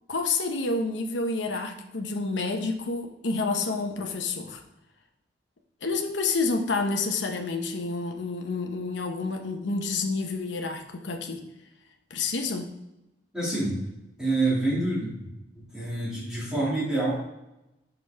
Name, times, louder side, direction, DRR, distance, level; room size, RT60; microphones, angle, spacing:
voice 1, 0.1-4.6 5.8-11.4 12.1-12.7, left 3 dB, 75° left, 4 dB, 0.8 m, -29 dB
voice 2, 13.3-13.8 14.2-15.3 15.7-17.1, right 2 dB, 5° right, -8 dB, 1.8 m, -27 dB
5.9 x 5.2 x 3.3 m, 0.92 s
head